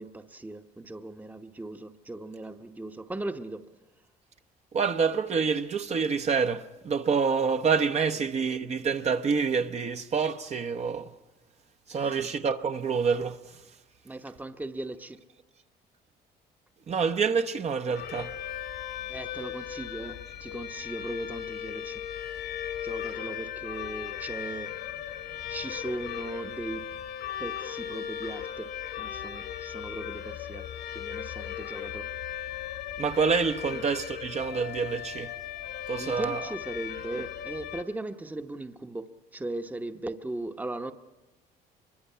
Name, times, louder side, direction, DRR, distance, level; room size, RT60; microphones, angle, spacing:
voice 1, 0.0-3.6 12.0-12.3 14.0-15.2 19.1-22.0 22.8-24.8 25.5-26.9 27.4-32.1 33.7-33.8 36.0-40.9, right 2 dB, 10° right, 0.9 m, -38 dB
voice 2, 4.7-11.1 11.9-13.6 16.9-18.3 33.0-35.3 35.9-36.4, right 5 dB, 40° right, 0.9 m, -27 dB
sound 1, 17.9-37.8, left 10 dB, 80° left, 2.1 m, -37 dB
24.0 x 23.0 x 5.7 m
cardioid pair, 110°, 17 cm